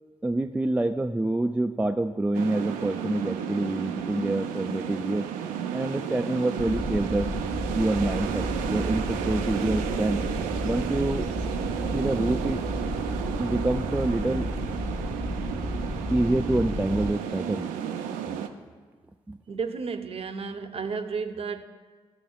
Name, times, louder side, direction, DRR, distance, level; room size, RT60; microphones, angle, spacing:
voice 1, 0.2-5.3 5.7-7.3 7.7-10.2 10.6-11.3 11.9-12.6 13.4-14.5 16.1-17.7 19.3-19.4, right 2 dB, 10° right, 7 dB, 0.3 m, -27 dB
sound 1, 2.3-18.5, right 8 dB, 85° right, 0.4 m, -32 dB
sound 2, 6.6-17.1, left 1 dB, 25° left, 1.5 m, -33 dB
voice 2, 19.5-21.6, right 5 dB, 45° right, 8 dB, 0.6 m, -32 dB
12.5 x 6.3 x 2.3 m, 1.5 s
hypercardioid pair, 45°, 14 cm